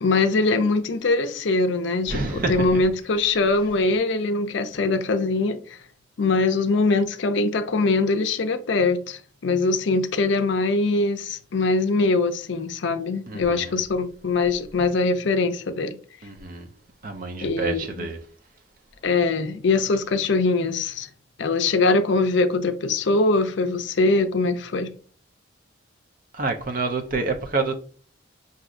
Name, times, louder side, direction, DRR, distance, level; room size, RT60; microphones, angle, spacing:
voice 1, 0.0-5.8 6.2-16.0 17.4-18.1 19.0-21.1 21.4-24.9, left 3 dB, 65° left, 0.5 m, -22 dB
voice 2, 2.1-2.8 13.3-13.8 16.2-16.7 17.0-18.2 26.3-27.7, right 3 dB, 45° right, 0.6 m, -28 dB
6.0 x 2.7 x 2.5 m
head